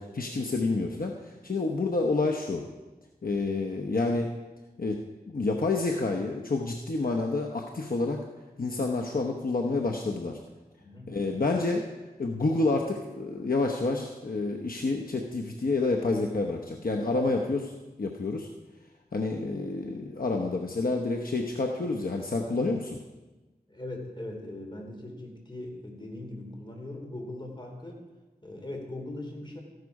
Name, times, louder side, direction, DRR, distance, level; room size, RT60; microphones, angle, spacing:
voice 1, 0.0-2.6 3.2-4.3 4.8-5.0 5.3-8.2 8.6-10.4 11.1-11.8 12.2-17.7 18.0-18.5 19.1-23.0, left 3 dB, 60° left, 1 dB, 1.0 m, -28 dB
voice 2, 10.8-11.1 23.7-28.0 28.4-29.6, left 1 dB, 30° left, 1 dB, 3.2 m, -40 dB
14.0 x 11.5 x 4.8 m, 1.2 s
wide cardioid pair, 65°, 16 cm